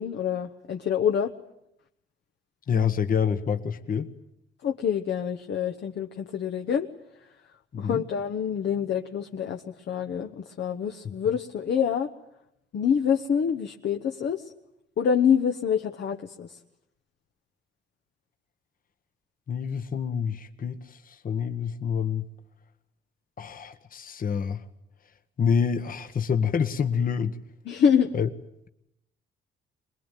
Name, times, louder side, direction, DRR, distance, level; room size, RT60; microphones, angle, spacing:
voice 1, 0.0-1.3 4.6-6.9 7.8-12.1 12.7-14.4 15.0-16.6 27.6-28.1, left 7 dB, 60° left, 4 dB, 1.3 m, -26 dB
voice 2, 2.7-4.1 7.7-8.0 11.0-11.1 19.5-22.2 23.4-24.6 25.4-27.4 28.1-28.3, left 7 dB, 45° left, 8 dB, 1.4 m, -27 dB
23.5 x 21.0 x 9.2 m, 0.79 s
cardioid pair, 90°, 20 cm